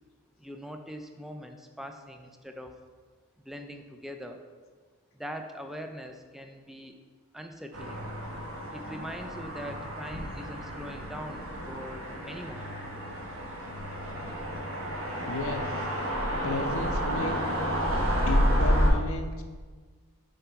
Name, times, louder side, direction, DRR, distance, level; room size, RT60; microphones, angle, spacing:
voice 1, 0.4-2.8 3.4-4.4 5.1-6.9 7.3-8.0 8.7-12.7, equal, ahead, 5 dB, 0.4 m, -42 dB
sound 1, 7.7-18.9, equal, 65° right, 1.2 m, -30 dB
voice 2, 15.2-15.7 16.4-17.3 18.3-19.4, left 2 dB, 65° left, 4 dB, 0.7 m, -33 dB
6.7 x 4.0 x 4.6 m, 1.5 s
head